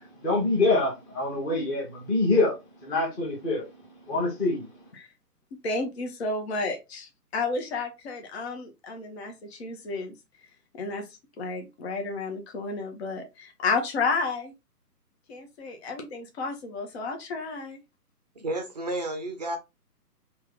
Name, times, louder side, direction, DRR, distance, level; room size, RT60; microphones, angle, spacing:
voice 1, 0.0-4.9, left 2 dB, 15° left, 1.0 m, -26 dB
voice 2, 5.6-10.1 10.7-14.5 15.3-17.8, left 3 dB, 40° left, 1.0 m, -32 dB
voice 3, 18.3-19.6, right 1 dB, 25° right, 0.6 m, -31 dB
3.0 x 3.0 x 3.7 m
figure-of-eight pair, 145°, 48 cm